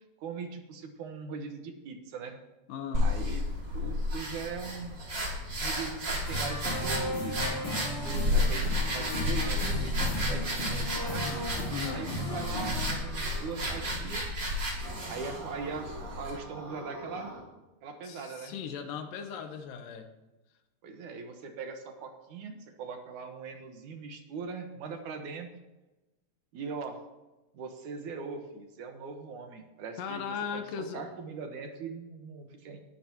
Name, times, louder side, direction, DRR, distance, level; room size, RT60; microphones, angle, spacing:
voice 1, 0.2-2.4 3.0-3.4 3.7-5.0 5.6-7.6 8.0-11.4 11.9-14.3 15.1-15.9 16.1-17.4 17.8-18.6 20.8-25.5 26.5-27.0 27.5-30.2 30.5-32.8, right 5 dB, 70° right, 5 dB, 2.6 m, -40 dB
voice 2, 2.7-3.0 11.7-12.0 18.0-20.1 30.0-31.0, left 7 dB, 85° left, 6 dB, 2.8 m, -37 dB
sound 1, 2.9-16.4, left 1 dB, 35° right, 3.6 m, -32 dB
sound 2, 6.2-12.9, left 1 dB, 40° left, 5.9 m, -36 dB
sound 3, 11.2-13.9 14.8-17.4, right 2 dB, 55° right, 3.7 m, -45 dB
20.5 x 11.5 x 3.0 m, 1.1 s
omnidirectional pair, 3.8 m